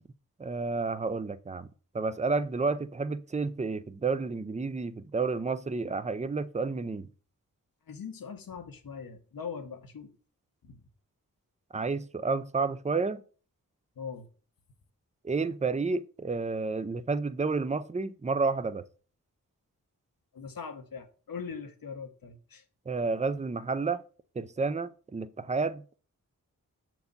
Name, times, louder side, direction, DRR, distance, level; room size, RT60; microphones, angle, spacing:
voice 1, 0.4-1.7 1.9-7.1 11.7-13.2 15.2-18.8 22.9-24.0 24.4-26.0, right 4 dB, 20° right, 0.6 m, -30 dB
voice 2, 7.9-10.1 10.6-10.8 14.0-14.3 20.3-22.6, left 6 dB, 75° left, 1.3 m, -41 dB
6.7 x 4.7 x 5.4 m
cardioid pair, 40°, 35 cm